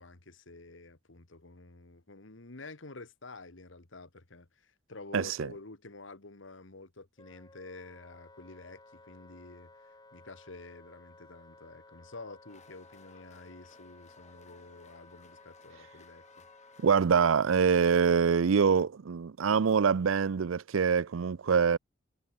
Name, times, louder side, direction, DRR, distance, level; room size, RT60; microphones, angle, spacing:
voice 1, 0.0-16.2, left 3 dB, 70° left, 1.8 m, -49 dB
voice 2, 5.1-5.5 16.8-21.8, right 6 dB, 80° right, 0.5 m, -25 dB
Wind instrument woodwind instrument, 7.2-17.5, left 2 dB, 20° left, 5.8 m, -57 dB
sound 1, 12.5-17.8, left 5 dB, 35° left, 4.6 m, -61 dB
head